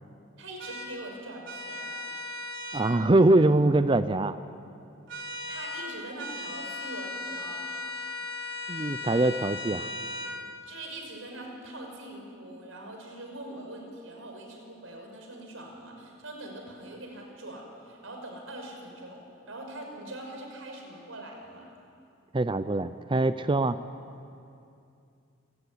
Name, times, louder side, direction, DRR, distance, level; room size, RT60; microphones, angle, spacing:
voice 1, 0.4-2.0 5.2-7.8 10.7-21.7, right 1 dB, 90° right, 2 dB, 5.7 m, -43 dB
sound 1, 0.6-0.9 1.4-2.9 5.1-5.9 6.2-10.3, left 2 dB, 65° right, 5.5 m, -37 dB
voice 2, 2.7-4.4 8.7-9.9 22.3-23.8, right 2 dB, 25° right, 12 dB, 0.5 m, -23 dB
28.5 x 15.5 x 9.8 m, 2.6 s
head